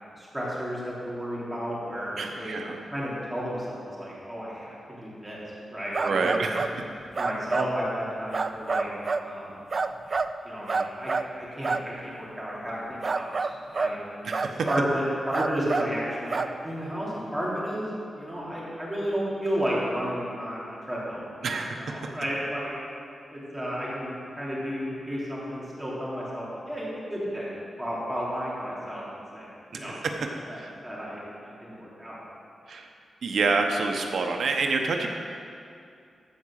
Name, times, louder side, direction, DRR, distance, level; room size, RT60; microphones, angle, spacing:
voice 1, 0.2-2.6 2.9-5.4 5.7-6.6 7.2-8.9 9.2-9.6 10.4-13.5 13.7-14.0 14.2-14.4 14.7-21.2 21.5-22.7 23.3-27.5 27.8-30.0 30.5-32.2, equal, 5° right, -7 dB, 3.1 m, -32 dB
voice 2, 2.2-2.8 6.0-6.8 14.2-14.7 21.4-22.1 29.7-29.8 30.5-30.7 32.7-32.9 33.2-35.1, right 4 dB, 70° right, 3 dB, 1.0 m, -28 dB
sound 1, 5.9-6.7 7.1-7.7 8.3-9.3 9.7-10.3 10.7-11.3 11.6-11.8 13.0-14.0 14.3-14.9 15.3-15.9 16.3-16.5, right 4 dB, 40° right, 0.4 m, -28 dB
14.0 x 5.0 x 6.6 m, 2.4 s
wide cardioid pair, 125°, 0 cm